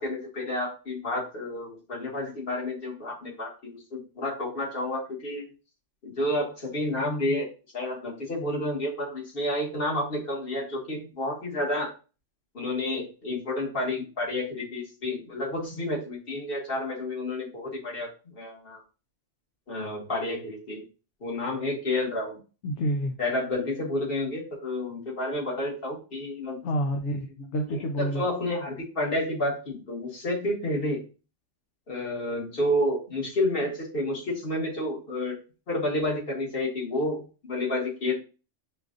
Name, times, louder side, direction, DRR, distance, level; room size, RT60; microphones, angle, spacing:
voice 1, 0.0-5.5 6.0-7.5 7.7-11.9 12.5-18.8 19.7-20.8 21.2-22.4 23.2-26.7 27.7-31.0 31.9-35.4 35.7-38.1, left 1 dB, 50° left, -4 dB, 1.7 m, -30 dB
voice 2, 22.6-23.1 26.6-28.2, equal, 70° left, 3 dB, 0.9 m, -28 dB
6.7 x 2.5 x 2.5 m, 0.33 s
omnidirectional pair, 1.2 m